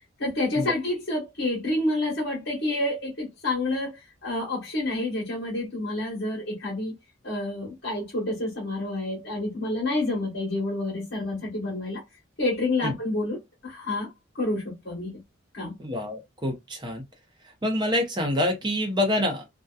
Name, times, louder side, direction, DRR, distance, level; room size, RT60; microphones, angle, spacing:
voice 1, 0.2-6.9 7.2-12.0 12.4-13.4 13.6-14.1 14.3-15.1 15.5-15.7, left 2 dB, 55° left, 1.1 m, -28 dB
voice 2, 15.8-17.0 17.6-19.5, left 1 dB, 20° right, 0.6 m, -26 dB
2.7 x 2.2 x 2.3 m
head